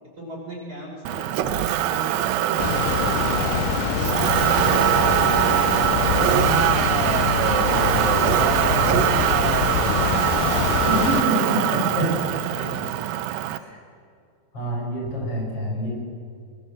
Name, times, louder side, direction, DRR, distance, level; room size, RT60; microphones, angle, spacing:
voice 1, 0.2-6.6 7.5-11.9 12.5-13.1, equal, 25° right, -2 dB, 6.4 m, -38 dB
Motor vehicle (road), 1.1-13.6, right 12 dB, 85° right, 2.6 m, -22 dB
sound 1, 2.6-11.2, left 11 dB, 75° left, 2.2 m, -25 dB
voice 2, 10.9-12.1 12.5-12.7 13.5-13.8 14.5-15.9, right 1 dB, 40° left, -2 dB, 7.7 m, -26 dB
25.5 x 23.5 x 7.7 m, 2.3 s
omnidirectional pair, 3.9 m